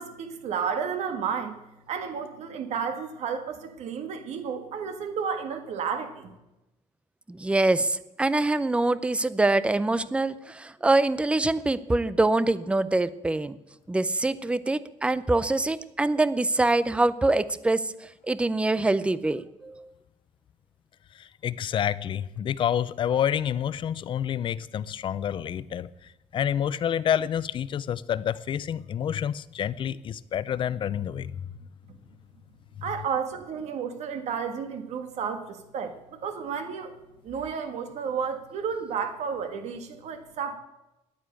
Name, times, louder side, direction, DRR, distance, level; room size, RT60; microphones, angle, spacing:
voice 1, 0.0-1.6 1.9-6.3 32.8-36.9 37.2-40.5, right 6 dB, 65° right, 1.7 m, -32 dB
voice 2, 7.3-13.6 13.9-17.9 18.3-19.9, right 2 dB, 10° right, 0.5 m, -24 dB
voice 3, 21.2-25.9 26.3-31.3, left 9 dB, 40° left, 0.5 m, -28 dB
10.5 x 9.5 x 8.9 m
cardioid pair, 150°, 12 cm